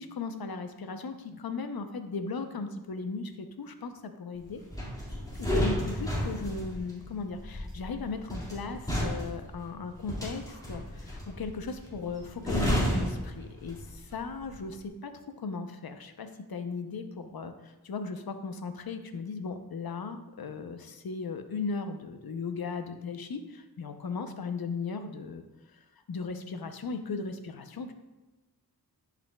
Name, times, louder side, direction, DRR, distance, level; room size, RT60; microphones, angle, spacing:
voice 1, 0.0-4.6 5.3-25.4 25.7-27.9, left 4 dB, 65° left, 8 dB, 0.7 m, -37 dB
sound 1, 4.7-14.1 14.3-14.6, equal, 10° left, 2.0 m, -32 dB
10.5 x 5.0 x 2.3 m, 1.1 s
wide cardioid pair, 90°, 39 cm